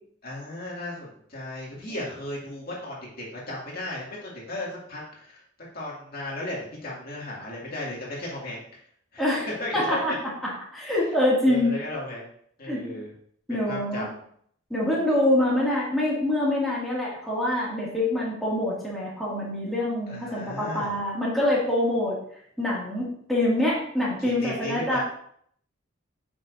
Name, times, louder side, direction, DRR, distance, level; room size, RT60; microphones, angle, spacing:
voice 1, 0.2-5.4 5.7-8.6 9.1-9.2 9.6-10.0 11.4-12.3 12.6-13.1 13.5-14.1 20.1-21.0 24.2-25.0, left 1 dB, 45° left, -4 dB, 2.3 m, -35 dB
voice 2, 9.2-9.5 9.7-10.1 10.4-11.7 12.7-12.8 13.5-14.1 14.7-22.2 22.6-25.0, left 1 dB, ahead, -7 dB, 2.2 m, -25 dB
9.8 x 6.2 x 2.6 m, 0.64 s
head